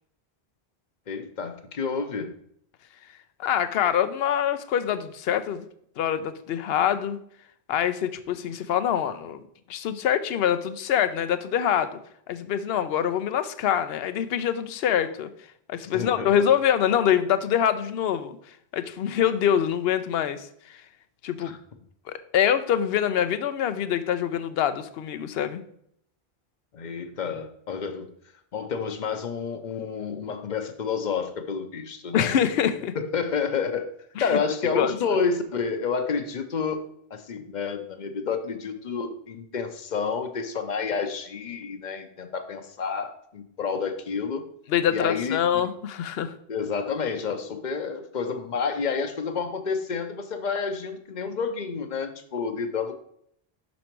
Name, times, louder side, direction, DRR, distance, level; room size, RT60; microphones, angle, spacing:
voice 1, 1.1-2.3 15.9-16.3 21.4-21.6 26.7-28.1 28.5-32.3 32.9-33.9 34.2-36.8 37.1-44.4 44.9-45.4 46.5-53.0, left 5 dB, 50° left, 7 dB, 0.8 m, -29 dB
voice 2, 3.4-5.6 6.0-7.2 7.7-9.4 9.7-12.0 12.3-15.3 15.7-18.4 18.7-20.8 21.2-21.5 22.1-25.6 32.1-32.9 34.2-34.4 34.7-34.9 44.7-46.3, left 9 dB, 75° left, 11 dB, 0.8 m, -25 dB
6.1 x 5.3 x 4.4 m, 0.70 s
omnidirectional pair, 1.0 m